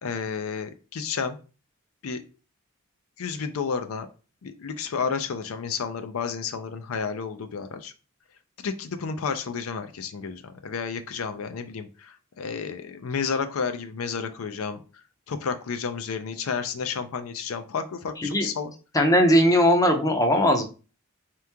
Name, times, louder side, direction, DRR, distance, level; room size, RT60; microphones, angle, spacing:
voice 1, 0.0-1.4 2.0-2.2 3.2-4.1 4.4-7.9 8.6-14.8 15.3-18.7, left 5 dB, 70° left, 9 dB, 0.4 m, -31 dB
voice 2, 18.9-20.6, equal, 15° left, 4 dB, 0.6 m, -19 dB
3.6 x 3.0 x 3.4 m, 0.34 s
head